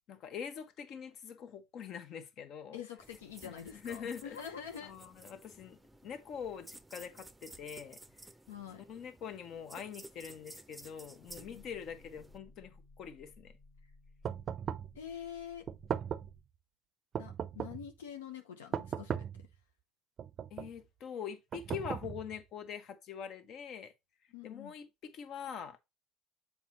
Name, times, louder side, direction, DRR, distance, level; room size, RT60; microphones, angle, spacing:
voice 1, 0.1-2.8 3.4-4.5 4.8-5.8 6.0-8.0 8.9-13.5 20.5-23.9 24.4-25.8, left 7 dB, 55° left, 1.1 m, -44 dB
voice 2, 2.7-4.9 8.5-8.8 11.5-11.6 15.0-15.6 17.2-19.5 24.3-24.7, left 8 dB, 90° left, 0.8 m, -46 dB
sound 1, 3.0-12.4, right 2 dB, 5° right, 0.7 m, -55 dB
sound 2, 11.2-16.4, left 2 dB, 75° left, 2.6 m, -59 dB
sound 3, 14.2-15.0 15.7-16.4 17.1-17.9 18.7-19.5 20.2-20.8 21.5-22.4, right 8 dB, 45° right, 0.5 m, -38 dB
7.2 x 4.8 x 2.9 m
hypercardioid pair, 75°, 0 cm